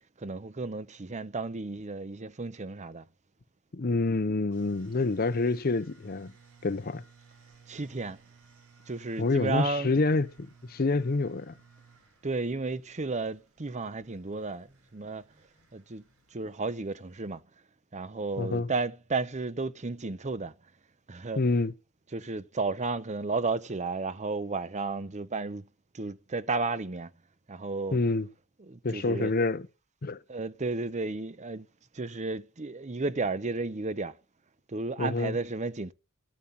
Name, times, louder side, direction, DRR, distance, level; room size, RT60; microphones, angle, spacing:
voice 1, 0.2-3.0 7.7-8.2 8.9-9.9 12.2-15.2 15.7-16.0 16.3-17.4 17.9-20.5 21.1-21.4 22.1-25.7 25.9-27.1 27.5-28.0 28.7-29.3 30.3-31.7 31.9-34.2 34.7-35.9, right 3 dB, 35° right, 0.7 m, -33 dB
voice 2, 3.7-6.3 6.6-7.0 9.2-11.5 18.4-18.7 21.4-21.7 27.9-28.3 28.8-29.7 30.0-30.2 35.0-35.4, left 3 dB, 45° left, 0.7 m, -27 dB
sound 1, 4.5-17.4, right 5 dB, 75° right, 5.4 m, -59 dB
13.5 x 7.2 x 8.6 m
head